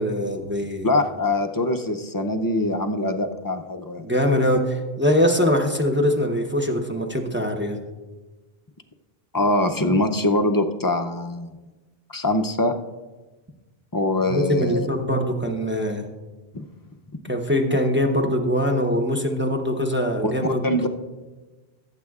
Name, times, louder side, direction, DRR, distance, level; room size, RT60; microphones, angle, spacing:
voice 1, 0.0-0.9 4.0-7.8 14.2-16.0 17.3-20.6, equal, 15° right, 1 dB, 0.7 m, -22 dB
voice 2, 0.8-4.1 9.3-11.6 12.1-12.8 13.9-14.9 16.5-16.6 20.2-20.9, left 1 dB, 30° left, 5 dB, 0.4 m, -23 dB
18.5 x 8.2 x 2.4 m, 1.2 s
omnidirectional pair, 1.1 m